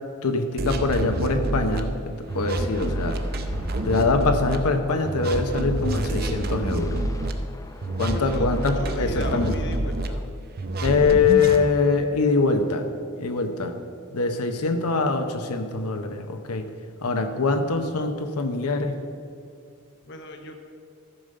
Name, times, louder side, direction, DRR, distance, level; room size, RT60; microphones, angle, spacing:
voice 1, 0.2-3.2 3.8-7.0 8.0-9.5 10.8-12.8 13.2-13.7 14.1-16.7 17.0-18.9, left 4 dB, 90° left, 6 dB, 0.8 m, -23 dB
sound 1, 0.6-1.8 2.3-4.6 5.0-7.3 7.8-10.1 10.6-11.6, right 1 dB, 45° right, 0.7 m, -27 dB
sound 2, 2.3-10.3, left 1 dB, 15° left, 0.5 m, -44 dB
voice 2, 8.0-10.3 20.0-20.6, left 2 dB, 50° left, 6 dB, 0.8 m, -36 dB
13.5 x 5.1 x 6.5 m, 2.4 s
head